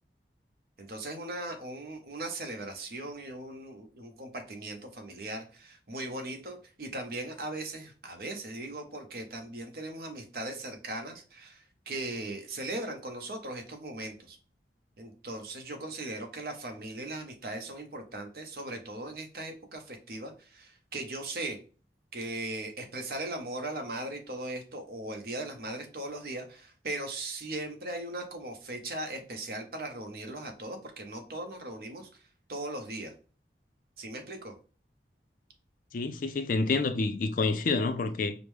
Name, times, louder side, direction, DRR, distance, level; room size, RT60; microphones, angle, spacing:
voice 1, 0.8-14.4 15.0-21.6 22.1-32.2 32.5-33.1 34.0-34.5, right 2 dB, 55° right, 0.8 m, -38 dB
voice 2, 35.9-38.3, left 3 dB, 50° left, 0.4 m, -28 dB
5.1 x 2.1 x 3.1 m
head